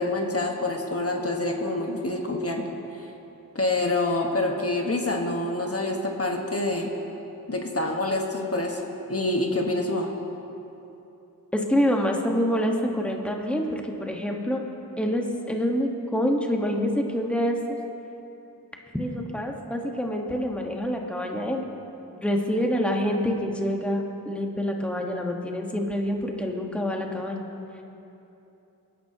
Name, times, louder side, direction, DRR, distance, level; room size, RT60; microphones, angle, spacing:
voice 1, 0.0-2.7 3.5-6.9 7.5-8.8 9.1-10.1, left 2 dB, 40° left, 1 dB, 1.5 m, -26 dB
voice 2, 11.5-14.6 15.0-17.8 18.9-21.6 22.2-27.5, equal, 5° left, 1 dB, 1.4 m, -26 dB
21.5 x 11.5 x 2.9 m, 2.9 s
cardioid pair, 40°, 36 cm